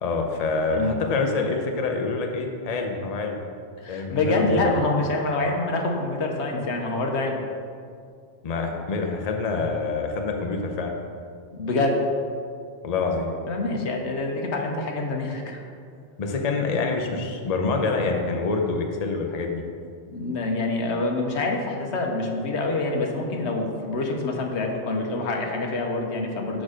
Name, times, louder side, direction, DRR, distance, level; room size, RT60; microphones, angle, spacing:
voice 1, 0.0-3.4 3.9-4.8 8.4-10.9 12.8-13.3 16.2-19.6, left 3 dB, 40° left, 3 dB, 0.7 m, -26 dB
voice 2, 0.7-1.0 3.8-7.4 11.5-12.0 13.5-15.6 20.1-26.6, left 2 dB, 80° left, 1 dB, 1.2 m, -26 dB
6.4 x 6.1 x 5.0 m, 2.3 s
omnidirectional pair, 1.1 m